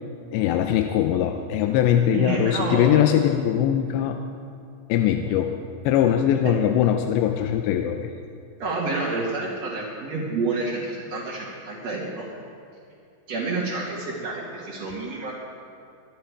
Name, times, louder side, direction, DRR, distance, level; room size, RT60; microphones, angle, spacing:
voice 1, 0.3-4.2 4.9-5.6 5.8-8.1, left 10 dB, 90° left, 5 dB, 2.9 m, -21 dB
voice 2, 2.1-2.9 8.6-12.2 13.3-15.3, right 3 dB, 45° right, -6 dB, 2.4 m, -29 dB
25.0 x 11.5 x 4.8 m, 2.5 s
omnidirectional pair, 5.1 m